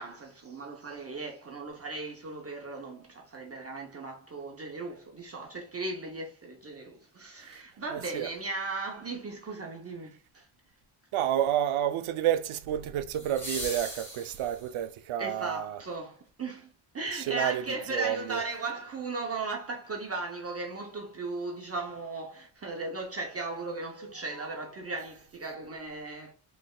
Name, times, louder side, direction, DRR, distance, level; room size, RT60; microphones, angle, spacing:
voice 1, 0.0-10.5 15.2-26.3, right 3 dB, 30° right, 0.6 m, -37 dB
sound 1, 7.5-7.6 13.1-14.9 17.1-17.2, equal, 5° left, 1.6 m, -40 dB
voice 2, 7.9-8.3 11.1-15.8 17.1-17.6 17.9-18.4, right 11 dB, 75° right, 0.6 m, -30 dB
3.3 x 3.2 x 2.2 m
wide cardioid pair, 135°, 49 cm